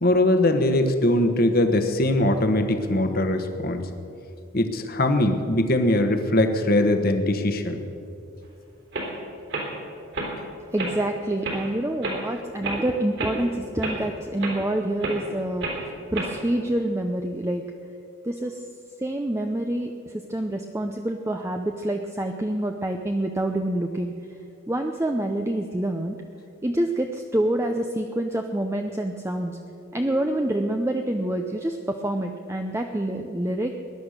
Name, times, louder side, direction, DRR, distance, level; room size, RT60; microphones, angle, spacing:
voice 1, 0.0-3.9 4.5-7.8, left 1 dB, 45° left, 7 dB, 1.3 m, -21 dB
sound 1, 8.4-8.5 8.9-9.1 9.5-9.7 10.1-10.3 10.8-10.9 11.4-11.6 12.0-12.2 12.6-12.8 13.2-13.4 13.8-14.0 14.4-14.6 15.0-15.2 15.6-15.8 16.1-16.4, right 2 dB, 55° right, 3.5 m, -29 dB
voice 2, 10.7-17.6 18.2-18.6 19.0-24.1 24.7-26.2 26.6-33.7, right 1 dB, 10° right, 4 dB, 0.6 m, -27 dB
20.0 x 11.0 x 6.6 m, 2.6 s
head